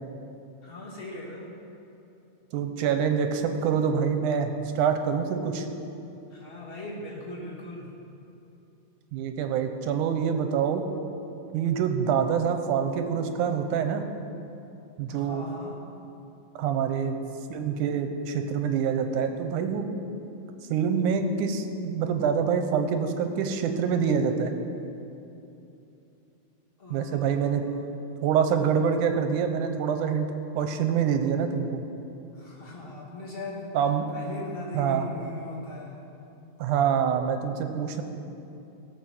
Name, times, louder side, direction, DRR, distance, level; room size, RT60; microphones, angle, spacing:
voice 1, 0.6-1.5 6.3-7.9 15.1-15.8 26.8-27.8 32.3-33.9 34.1-36.0, left 2 dB, 20° left, -3 dB, 1.8 m, -39 dB
voice 2, 2.5-5.7 9.1-10.8 11.5-14.0 15.0-15.4 16.6-17.2 17.5-19.9 20.7-24.5 26.9-27.6 28.2-30.3 30.6-31.8 33.7-34.1 34.7-35.1 36.6-38.0, right 7 dB, 85° right, 7 dB, 2.3 m, -26 dB
16.5 x 7.2 x 6.1 m, 2.8 s
omnidirectional pair, 3.5 m